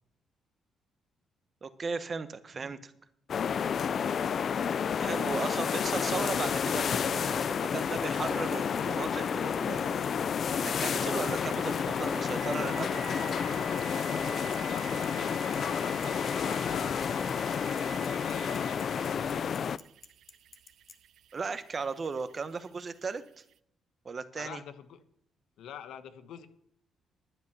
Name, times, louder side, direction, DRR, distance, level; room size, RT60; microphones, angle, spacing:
voice 1, 1.6-2.9 5.0-10.1 10.6-13.0 21.3-23.2 24.0-24.6, right 4 dB, 40° right, 13 dB, 1.1 m, -36 dB
sound 1, 3.3-19.8, left 7 dB, 55° left, 0.4 m, -30 dB
Bicycle, 5.0-21.0, left 4 dB, 35° left, 1.3 m, -53 dB
voice 2, 5.3-5.9 14.6-19.5 24.4-25.0 25.6-26.5, left 9 dB, 80° left, 11 dB, 1.1 m, -45 dB
sound 2, 11.0-23.5, right 10 dB, 70° right, 0.4 m, -48 dB
11.0 x 9.4 x 6.7 m, 0.71 s
cardioid pair, 90°, 0 cm